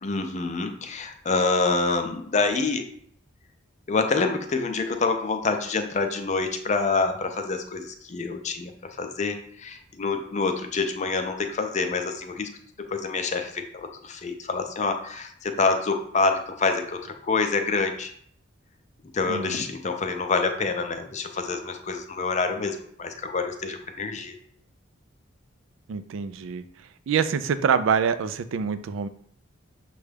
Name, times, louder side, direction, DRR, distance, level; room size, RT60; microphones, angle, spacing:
voice 1, 0.0-2.9 3.9-12.5 12.8-18.1 19.1-24.3, left 4 dB, 35° left, 6 dB, 0.5 m, -27 dB
voice 2, 25.9-26.6 27.1-29.1, right 6 dB, 70° right, 12 dB, 0.3 m, -25 dB
6.2 x 2.3 x 3.3 m, 0.63 s
head